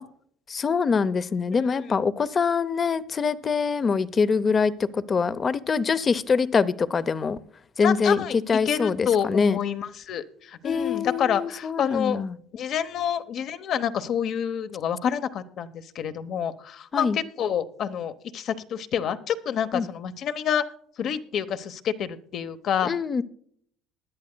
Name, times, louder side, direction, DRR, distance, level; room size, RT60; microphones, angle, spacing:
voice 1, 0.5-7.4 7.8-9.6 10.6-12.4 16.9-17.2 19.7-19.9 22.8-23.2, left 5 dB, 30° left, 0.6 m, -24 dB
voice 2, 1.5-2.0 7.8-12.2 12.5-20.6 21.0-22.9, left 8 dB, 55° left, 0.9 m, -28 dB
21.0 x 10.5 x 2.2 m
cardioid pair, 115°, 0 cm